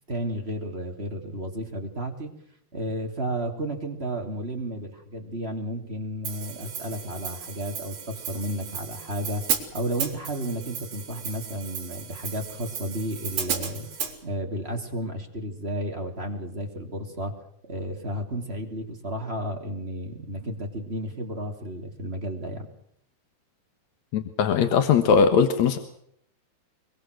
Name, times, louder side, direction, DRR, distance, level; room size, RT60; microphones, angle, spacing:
voice 1, 0.1-2.3 2.7-13.9 14.2-17.3 17.7-22.7, right 1 dB, 15° right, 2 dB, 2.7 m, -32 dB
Hi-hat, 6.2-14.1, right 7 dB, 80° right, 5.5 m, -34 dB
voice 2, 24.1-25.8, left 6 dB, 60° left, 8 dB, 2.2 m, -20 dB
24.0 x 24.0 x 6.5 m, 0.70 s
omnidirectional pair, 4.6 m